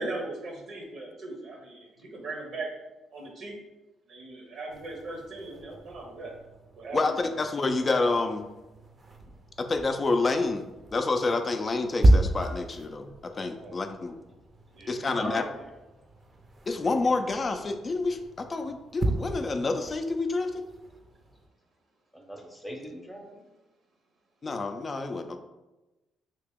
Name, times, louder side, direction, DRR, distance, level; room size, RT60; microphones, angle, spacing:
voice 1, 0.0-2.7 3.1-3.6 4.1-6.3 6.8-7.4 13.6-13.8 14.7-15.0, right 2 dB, 70° right, 0 dB, 0.7 m, -38 dB
sound 1, 4.7-21.5, right 1 dB, 30° right, 0.5 m, -32 dB
voice 2, 6.9-8.5 9.6-10.6 10.9-14.2 14.9-15.4 16.7-20.7 24.4-25.4, left 3 dB, 35° left, 6 dB, 0.3 m, -28 dB
voice 3, 14.9-15.7 22.1-23.5, equal, 5° left, 1 dB, 0.7 m, -39 dB
2.9 x 2.9 x 3.5 m, 1.1 s
cardioid pair, 90°, 0 cm